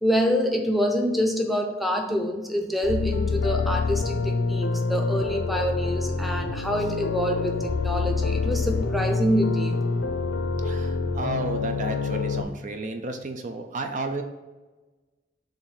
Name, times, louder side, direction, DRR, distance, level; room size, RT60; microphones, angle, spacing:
voice 1, 0.0-9.8, equal, ahead, 2 dB, 0.7 m, -26 dB
sound 1, 2.8-12.4, left 4 dB, 85° left, 0.6 m, -26 dB
voice 2, 10.6-14.2, right 2 dB, 45° right, 5 dB, 0.5 m, -32 dB
7.1 x 2.7 x 5.5 m, 1.2 s
head